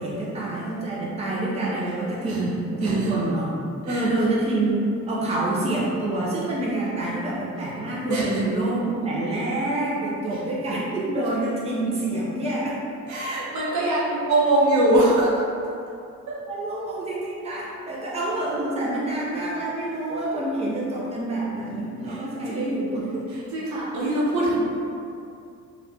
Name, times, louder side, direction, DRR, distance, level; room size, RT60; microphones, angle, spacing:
voice 1, 0.0-3.5 3.8-12.8 16.5-23.1, right 2 dB, 20° right, -6 dB, 0.6 m, -27 dB
voice 2, 13.1-15.4 22.1-22.2 22.5-22.7 23.5-24.6, right 1 dB, 70° right, -7 dB, 1.0 m, -22 dB
3.0 x 2.5 x 3.3 m, 2.5 s
cardioid pair, 90°, 30 cm